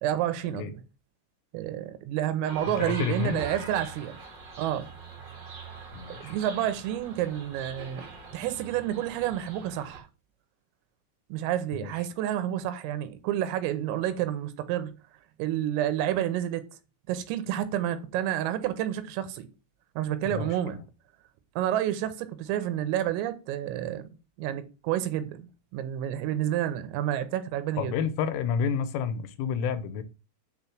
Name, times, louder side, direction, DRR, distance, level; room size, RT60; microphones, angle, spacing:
voice 1, 0.0-0.8 1.5-4.2 4.6-4.9 6.1-8.0 8.3-10.1 11.3-14.9 15.4-16.7 17.1-19.5 20.0-20.8 21.6-24.0 24.4-28.0, right 11 dB, 85° right, 3.5 m, -29 dB
sound 1, 2.4-10.0, right 4 dB, 50° right, 1.3 m, -43 dB
voice 2, 2.7-3.4 5.9-6.4 11.7-11.9 20.3-20.9 27.8-30.0, left 7 dB, 80° left, 3.3 m, -30 dB
9.6 x 4.1 x 7.3 m
omnidirectional pair, 6.0 m